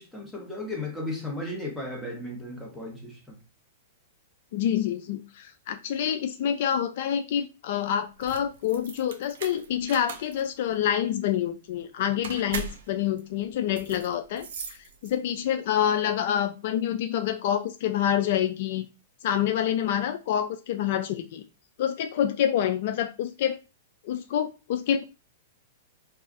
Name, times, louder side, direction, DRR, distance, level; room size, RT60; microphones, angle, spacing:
voice 1, 0.0-3.4, left 2 dB, 5° left, -2 dB, 1.1 m, -35 dB
voice 2, 4.5-14.8 15.0-18.9 19.2-21.4 21.8-23.6 24.0-25.0, left 10 dB, 60° left, 8 dB, 0.3 m, -27 dB
sound 1, 8.1-15.4, right 5 dB, 70° right, 0.6 m, -40 dB
2.4 x 2.3 x 3.9 m, 0.30 s
hypercardioid pair, 125°, 0 cm